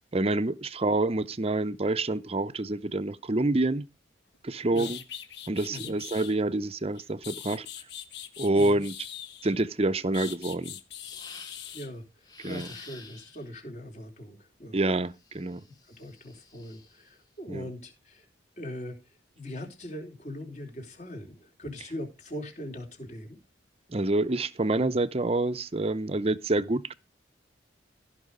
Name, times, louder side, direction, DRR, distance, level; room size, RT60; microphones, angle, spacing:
voice 1, 0.1-3.8 4.4-5.0 5.5-7.7 8.4-8.9 9.4-10.8 12.4-12.7 14.7-15.6 17.5-17.7 23.9-26.9, right 2 dB, 30° right, 0.6 m, -27 dB
sound 1, 4.3-4.4 4.7-6.4 7.0-9.6 10.1-11.9, left 10 dB, 60° left, 1.3 m, -42 dB
voice 2, 8.5-8.8 11.7-12.0 12.4-14.8 15.5-15.6 16.0-18.3 18.6-19.0 19.4-23.4, left 1 dB, 40° left, 4.0 m, -40 dB
sound 2, 11.0-11.8 12.2-13.5 15.2-17.1, left 4 dB, 20° left, 3.3 m, -50 dB
15.0 x 6.1 x 5.0 m
head